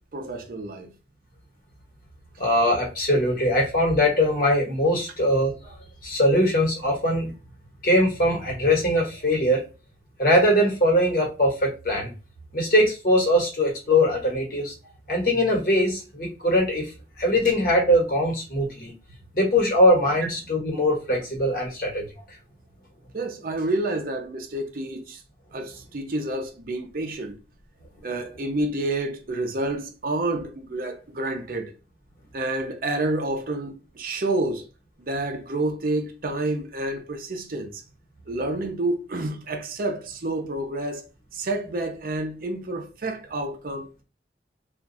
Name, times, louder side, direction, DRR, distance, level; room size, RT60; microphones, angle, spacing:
voice 1, 0.1-0.9 23.1-25.2 25.5-27.4 28.0-31.7 32.3-34.7 35.0-37.8 38.3-41.1 41.3-43.9, right 2 dB, 50° right, 0.6 m, -29 dB
voice 2, 2.4-5.7 6.0-7.3 7.8-9.6 10.2-12.1 12.5-14.7 15.1-16.9 17.2-18.9 19.3-22.1, left 1 dB, 50° left, 1.4 m, -21 dB
2.5 x 2.3 x 3.9 m
head